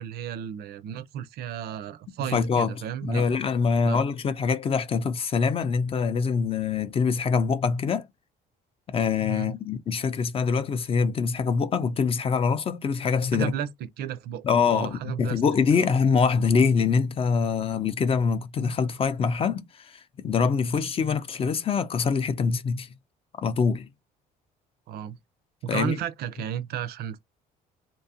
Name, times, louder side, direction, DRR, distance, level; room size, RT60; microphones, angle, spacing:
voice 1, 0.0-3.2 3.8-4.0 9.2-9.6 13.3-15.4 15.7-15.9 24.9-25.2 25.6-27.2, right 9 dB, 70° right, 0.4 m, -33 dB
voice 2, 2.3-2.7 3.0-8.1 8.9-13.5 14.4-22.9 23.4-23.9 25.7-26.0, left 5 dB, 35° left, 0.4 m, -24 dB
2.7 x 2.3 x 2.6 m
cardioid pair, 110°, 17 cm